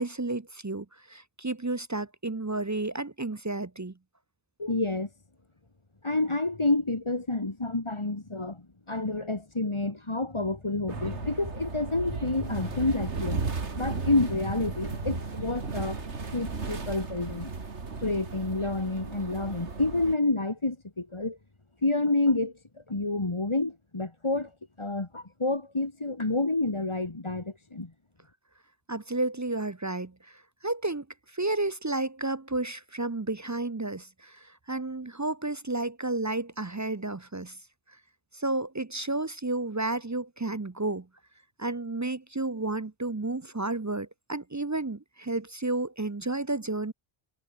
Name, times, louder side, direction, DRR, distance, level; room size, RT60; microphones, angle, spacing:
voice 1, 0.0-3.9 28.9-31.1 31.3-37.6 38.3-41.1 41.6-46.9, right 2 dB, 25° right, 0.4 m, -32 dB
voice 2, 4.6-5.1 6.0-16.0 16.3-17.5 18.0-21.4 21.8-22.5 22.9-24.5 24.8-27.9, left 2 dB, 25° left, 1.7 m, -29 dB
sound 1, 10.9-20.2, right 4 dB, 80° right, 2.5 m, -35 dB
omnidirectional pair, 1.2 m